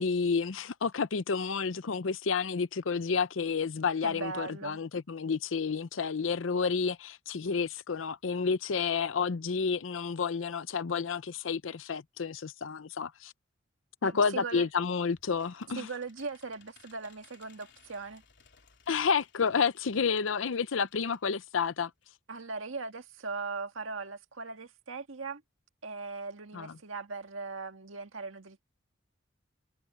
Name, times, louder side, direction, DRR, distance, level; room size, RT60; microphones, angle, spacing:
voice 1, 0.0-13.3 14.0-15.9 18.9-21.9 26.5-26.7, left 5 dB, 80° left, 0.6 m, -30 dB
voice 2, 4.0-4.8 14.0-14.7 15.8-18.2 22.3-25.4 25.8-28.6, right 4 dB, 85° right, 1.8 m, -39 dB
sound 1, 14.5-21.4 21.7-21.8 22.0-22.1, left 7 dB, 65° left, 3.3 m, -63 dB
head